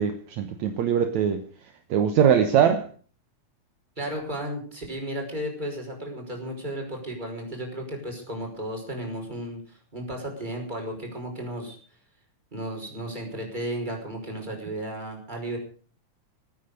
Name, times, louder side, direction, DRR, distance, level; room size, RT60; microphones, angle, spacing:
voice 1, 0.0-1.4 1.9-2.9, right 8 dB, 70° right, 8 dB, 2.3 m, -22 dB
voice 2, 4.0-11.8 12.5-15.6, right 1 dB, 15° right, 1 dB, 5.3 m, -34 dB
20.0 x 9.5 x 6.7 m, 0.43 s
omnidirectional pair, 3.6 m